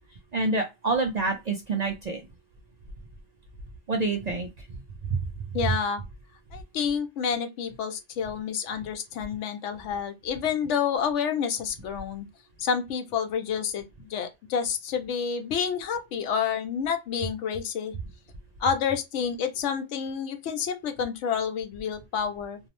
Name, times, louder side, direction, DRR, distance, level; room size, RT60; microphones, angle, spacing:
voice 1, 0.3-2.2 3.9-4.5 5.1-5.2, right 3 dB, 55° right, 0.4 m, -27 dB
voice 2, 5.5-6.0 6.5-12.3 12.6-17.9 18.6-22.6, left 7 dB, 85° left, 0.9 m, -29 dB
2.6 x 2.0 x 2.9 m
omnidirectional pair, 1.2 m